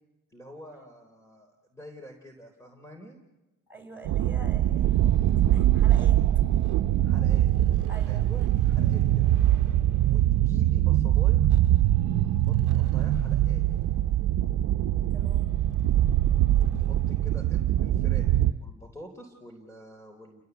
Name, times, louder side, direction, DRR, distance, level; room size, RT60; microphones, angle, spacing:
voice 1, 0.3-3.2 7.0-7.5 8.1-9.3 9.9-11.4 12.4-13.6 16.6-20.4, equal, 10° left, 3 dB, 3.9 m, -47 dB
voice 2, 3.7-6.2 7.9-8.2 15.1-15.5, right 2 dB, 5° right, 4 dB, 6.0 m, -46 dB
sound 1, 4.0-18.5, right 13 dB, 85° right, 0.9 m, -23 dB
29.5 x 18.5 x 8.2 m, 1.0 s
cardioid pair, 90°, 30 cm